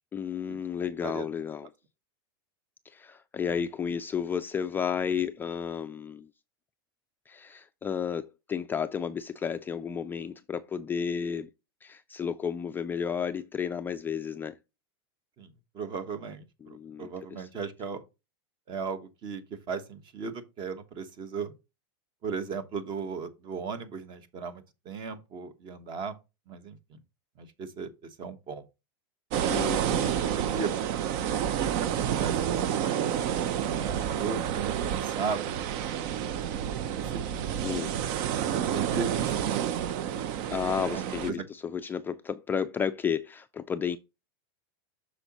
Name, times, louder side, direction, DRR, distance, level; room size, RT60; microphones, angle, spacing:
voice 1, 0.1-1.7 2.9-6.3 7.3-11.5 11.8-14.6 16.6-17.5 29.5-30.2 37.6-38.0 40.5-44.0, left 7 dB, 15° left, 0.3 m, -32 dB
voice 2, 15.7-18.0 18.7-19.4 19.7-21.5 22.2-26.2 26.5-26.8 27.4-27.9 28.2-28.6 30.0-30.7 31.6-33.0 33.7-35.6 36.9-37.5 38.5-40.0 40.8-41.4, right 5 dB, 35° right, 1.2 m, -37 dB
sound 1, 29.3-41.3, right 9 dB, 55° right, 0.7 m, -29 dB
7.9 x 6.2 x 2.9 m
supercardioid pair, 135°, 13 cm